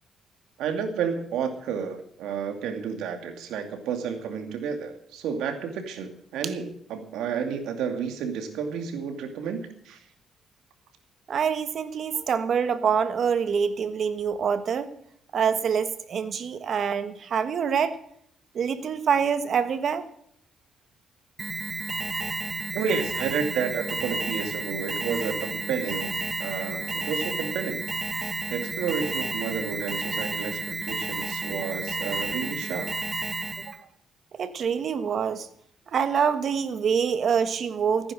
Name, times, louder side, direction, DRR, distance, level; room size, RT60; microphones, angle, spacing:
voice 1, 0.6-10.0 22.7-32.9, right 6 dB, 85° right, 7 dB, 2.4 m, -31 dB
voice 2, 11.3-14.9 15.3-17.9 18.5-20.1 33.7-33.8 34.3-35.5 35.9-38.1, right 7 dB, 55° right, 12 dB, 1.5 m, -25 dB
Alarm, 21.4-33.8, right 3 dB, 20° right, 1.1 m, -31 dB
15.5 x 9.7 x 6.3 m, 0.68 s
cardioid pair, 90°, 0 cm